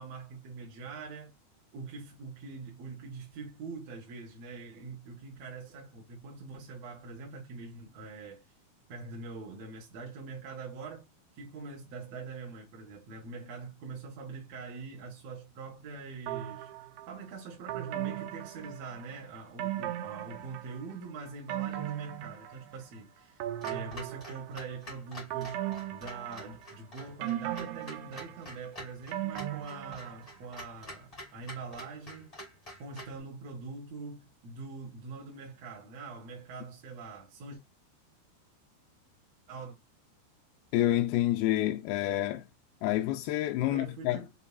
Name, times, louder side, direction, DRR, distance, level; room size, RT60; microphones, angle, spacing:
voice 1, 0.0-1.3 1.7-8.4 8.9-11.1 11.3-16.7 17.1-25.6 25.9-32.4 32.8-37.6 39.5-39.8 43.6-44.3, right 4 dB, 65° right, 1.7 m, -44 dB
sound 1, 16.3-17.1 17.7-19.1 19.6-20.9 21.3-22.9 23.4-24.7 25.3-26.8 27.2-30.5 30.8-30.9, right 12 dB, 80° right, 2.6 m, -37 dB
Clock, 23.6-33.2, equal, 30° left, 0.6 m, -47 dB
voice 2, 40.7-42.5 42.8-44.2, left 14 dB, 80° left, 2.3 m, -28 dB
6.8 x 2.8 x 2.3 m
omnidirectional pair, 4.7 m